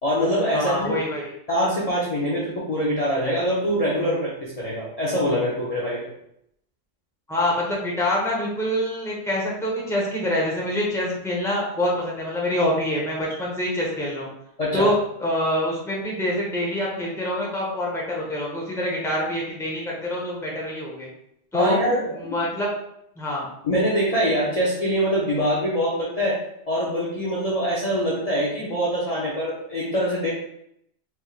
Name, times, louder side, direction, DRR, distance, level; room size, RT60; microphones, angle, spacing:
voice 1, 0.0-0.9 1.5-6.1 14.6-14.9 21.5-22.3 23.6-26.4 26.7-30.3, equal, 35° left, -6 dB, 0.8 m, -24 dB
voice 2, 0.5-1.3 7.3-14.3 14.7-21.1 21.5-21.8 22.1-22.7 23.2-23.5, left 1 dB, 5° left, -4 dB, 0.9 m, -25 dB
4.5 x 3.4 x 2.4 m, 0.75 s
omnidirectional pair, 1.3 m